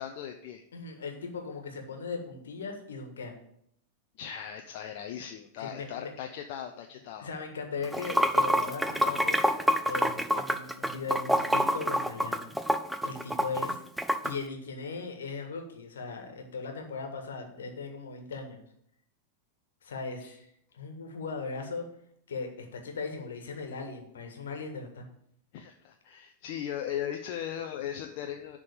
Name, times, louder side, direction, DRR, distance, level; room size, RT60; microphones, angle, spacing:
voice 1, 0.0-0.6 4.2-7.3 20.2-20.3 25.5-28.6, left 9 dB, 45° left, 4 dB, 0.6 m, -38 dB
voice 2, 0.7-3.3 5.6-6.1 7.2-9.4 9.8-12.5 13.0-13.8 14.2-18.6 19.8-20.2 20.7-21.9 22.3-25.1, left 4 dB, 65° left, 4 dB, 1.6 m, -38 dB
Water / Sink (filling or washing), 7.8-14.3, equal, ahead, 0.6 m, -26 dB
10.5 x 3.7 x 6.7 m, 0.72 s
figure-of-eight pair, 90°, 0 cm